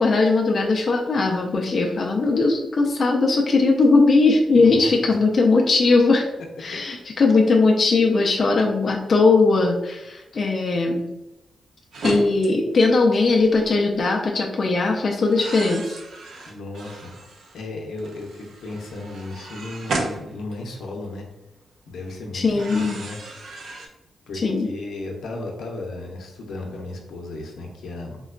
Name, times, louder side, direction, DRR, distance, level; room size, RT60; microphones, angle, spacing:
voice 1, 0.0-6.3 6.6-11.0 12.0-16.0 22.3-23.0 24.3-24.7, left 3 dB, 45° left, 0 dB, 0.3 m, -19 dB
voice 2, 4.5-5.2 16.5-21.2 21.9-23.2 23.4-23.7 24.3-28.2, left 2 dB, 85° left, 1 dB, 0.6 m, -35 dB
sound 1, 11.9-12.5 13.4-13.7 15.3-17.6 18.0-21.1 22.4-23.9, right 3 dB, 70° right, 0.5 m, -34 dB
3.7 x 2.1 x 2.4 m, 0.93 s
wide cardioid pair, 140°, 0 cm